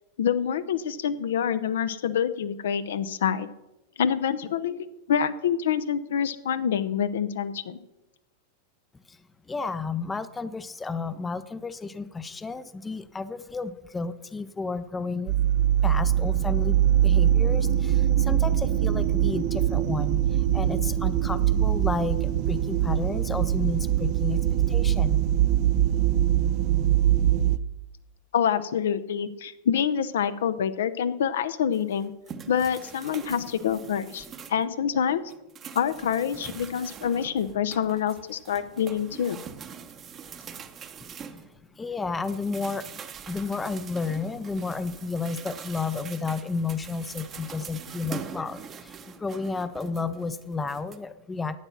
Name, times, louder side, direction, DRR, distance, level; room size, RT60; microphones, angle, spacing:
voice 1, 0.2-3.5 4.0-7.8 28.3-32.1 32.5-35.2 35.7-39.4, left 8 dB, 60° left, 13 dB, 0.6 m, -26 dB
voice 2, 9.5-15.4 15.8-25.2 41.1-41.5 41.8-43.0 43.3-51.6, left 4 dB, 10° left, 14 dB, 0.5 m, -32 dB
sound 1, 15.3-27.6, right 11 dB, 45° right, 0.5 m, -23 dB
sound 2, 31.7-34.7 35.1-41.9 42.2-51.0, right 7 dB, 25° right, 0.9 m, -43 dB
11.5 x 8.9 x 5.9 m, 0.96 s
figure-of-eight pair, 90°, 0 cm